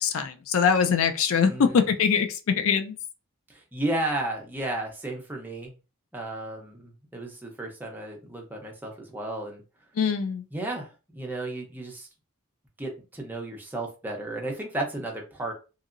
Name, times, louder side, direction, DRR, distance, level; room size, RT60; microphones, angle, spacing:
voice 1, 0.0-2.3 2.6-2.9 10.0-10.4, left 6 dB, 65° left, 0.4 m, -23 dB
voice 2, 1.5-1.9 3.5-5.8 6.1-9.6 10.5-12.1 12.8-15.5, right 2 dB, 10° right, 0.7 m, -33 dB
2.9 x 2.7 x 2.5 m
head